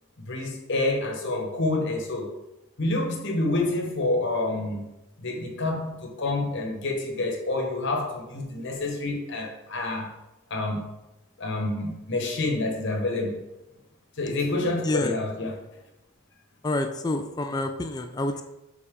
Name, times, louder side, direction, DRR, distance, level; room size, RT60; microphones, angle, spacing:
voice 1, 0.3-2.3 2.8-4.8 5.2-10.1 10.5-10.8 11.4-13.4 14.2-15.5, left 2 dB, 55° left, 1 dB, 1.1 m, -28 dB
voice 2, 14.8-15.2 16.6-18.4, left 2 dB, 20° left, 7 dB, 0.3 m, -28 dB
6.7 x 4.1 x 3.6 m, 0.95 s
head